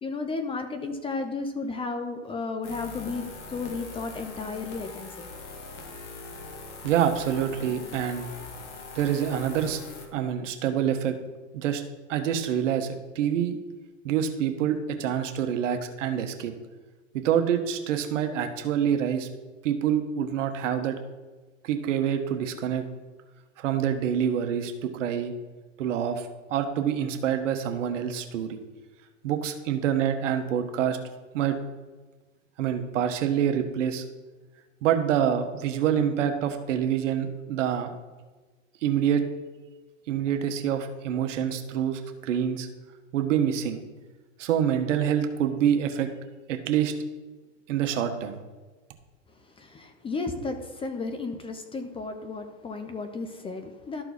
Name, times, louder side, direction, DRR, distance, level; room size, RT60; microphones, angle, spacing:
voice 1, 0.0-5.3 49.6-54.0, left 3 dB, 15° left, 7 dB, 0.5 m, -33 dB
sound 1, 2.6-10.1, left 4 dB, 65° left, 1.7 m, -42 dB
voice 2, 6.8-8.3 8.9-9.8 10.1-11.2 11.5-11.8 12.1-13.6 14.0-16.5 17.1-19.3 19.6-21.0 21.6-22.9 23.6-25.3 25.8-28.6 29.2-31.0 31.3-31.6 32.6-34.0 34.8-37.9 38.8-39.2 40.1-42.7 43.1-43.8 44.4-46.1 46.5-46.9 47.7-48.4, right 9 dB, 75° right, 6 dB, 1.2 m, -26 dB
12.5 x 4.5 x 4.1 m, 1.2 s
hypercardioid pair, 125°, 38 cm